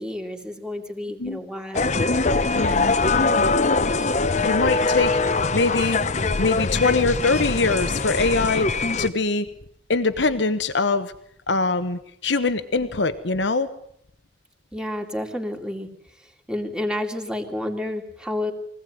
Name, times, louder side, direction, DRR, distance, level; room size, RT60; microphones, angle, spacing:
voice 1, 0.0-2.0 14.7-18.5, left 1 dB, 5° right, 3 dB, 2.5 m, -30 dB
sound 1, 1.7-9.1, left 3 dB, 40° left, 0.9 m, -22 dB
voice 2, 2.5-3.0 3.4-3.5 4.2-5.2 5.5-6.0 6.4-8.7 9.0-9.5 9.9-11.1 11.5-13.7, left 3 dB, 90° left, 9 dB, 1.1 m, -23 dB
24.0 x 17.0 x 9.3 m, 0.70 s
head